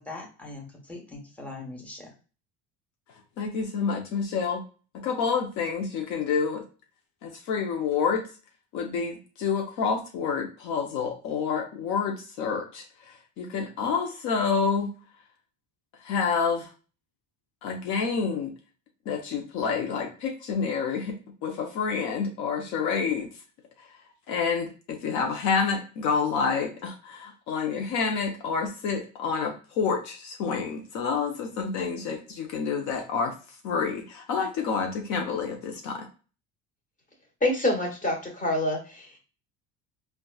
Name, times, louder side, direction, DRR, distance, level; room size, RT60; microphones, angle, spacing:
voice 1, 0.0-2.1, left 2 dB, 5° left, -2 dB, 1.0 m, -41 dB
voice 2, 3.4-4.6 5.0-6.6 7.2-8.2 8.7-14.9 16.0-16.7 17.6-18.5 19.1-23.3 24.3-33.3 33.6-36.1, left 5 dB, 65° left, 3 dB, 0.7 m, -28 dB
voice 3, 37.4-39.2, left 1 dB, 25° left, 1 dB, 1.3 m, -26 dB
3.8 x 2.4 x 2.3 m, 0.36 s
supercardioid pair, 100°, 30 cm